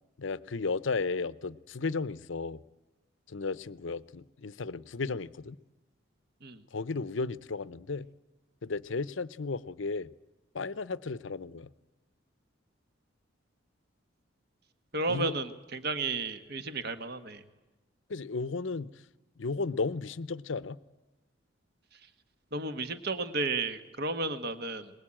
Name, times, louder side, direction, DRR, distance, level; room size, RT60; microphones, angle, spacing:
voice 1, 0.2-2.6 3.3-5.6 6.7-8.1 8.6-10.1 10.5-11.7 15.1-15.3 18.1-18.9 19.4-20.8, left 4 dB, 75° left, 0.7 m, -34 dB
voice 2, 14.9-17.4 22.5-24.9, right 3 dB, 55° right, 1.4 m, -33 dB
22.5 x 20.5 x 8.9 m
head